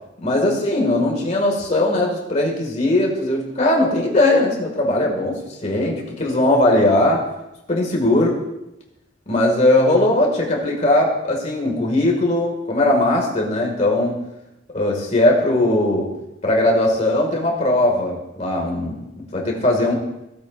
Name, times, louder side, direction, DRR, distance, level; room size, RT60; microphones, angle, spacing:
voice 1, 0.2-7.3 7.7-8.3 9.3-14.2 14.7-16.1 16.4-19.9, left 1 dB, 35° left, -1 dB, 2.1 m, -19 dB
16.0 x 8.0 x 2.6 m, 0.91 s
head